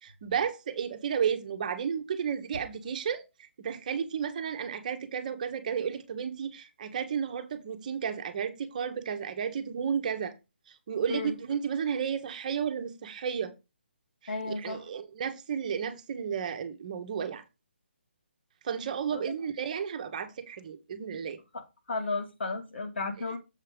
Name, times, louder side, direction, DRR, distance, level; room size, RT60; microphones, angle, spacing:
voice 1, 0.0-10.3 10.7-13.5 14.4-17.4 18.6-21.4, right 7 dB, 40° right, 1.2 m, -33 dB
voice 2, 14.3-14.8 19.1-19.2 21.9-23.4, left 3 dB, 65° left, 2.5 m, -33 dB
7.4 x 4.5 x 5.3 m
figure-of-eight pair, 150°, 6 cm